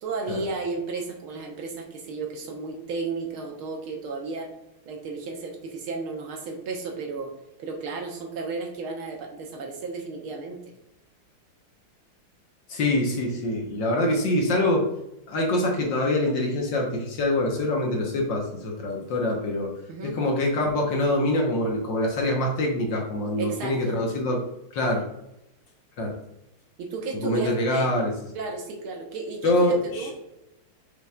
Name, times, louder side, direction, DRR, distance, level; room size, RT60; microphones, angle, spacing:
voice 1, 0.0-4.5 4.9-7.3 7.6-10.6 19.9-20.2 23.4-24.0 26.8-27.9 28.4-30.1, right 3 dB, 80° right, 1 dB, 2.1 m, -33 dB
voice 2, 12.7-14.9 15.3-19.7 20.0-24.4 24.7-25.1 26.0-26.2 27.1-28.1 29.4-30.1, left 1 dB, 60° left, 0 dB, 1.9 m, -25 dB
6.7 x 6.1 x 2.5 m, 0.86 s
omnidirectional pair, 2.3 m